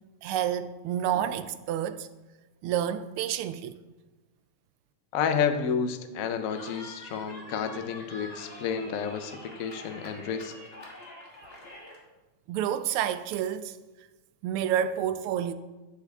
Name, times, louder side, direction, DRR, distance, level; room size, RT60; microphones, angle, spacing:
voice 1, 0.2-2.1 2.6-3.8 12.5-13.8 14.4-15.5, right 10 dB, 80° right, 1.4 m, -29 dB
voice 2, 5.1-10.5, left 7 dB, 75° left, 0.7 m, -30 dB
Cheering, 6.5-12.0, left 1 dB, 30° left, 1.7 m, -46 dB
13.0 x 6.5 x 3.5 m
omnidirectional pair, 2.4 m